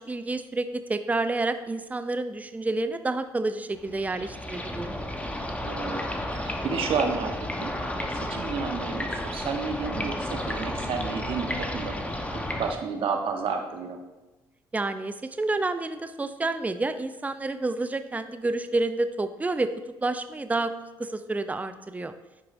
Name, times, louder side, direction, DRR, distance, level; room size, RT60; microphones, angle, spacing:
voice 1, 0.0-4.9 14.7-19.7 20.0-20.7 21.0-22.1, right 2 dB, 15° right, 9 dB, 0.5 m, -29 dB
sound 1, 3.7-12.7, left 1 dB, 15° left, 1.0 m, -32 dB
voice 2, 5.6-6.0 6.3-11.9 12.3-14.0, right 5 dB, 65° right, 4 dB, 1.0 m, -31 dB
10.5 x 4.7 x 2.6 m, 1.1 s
supercardioid pair, 60°, 10 cm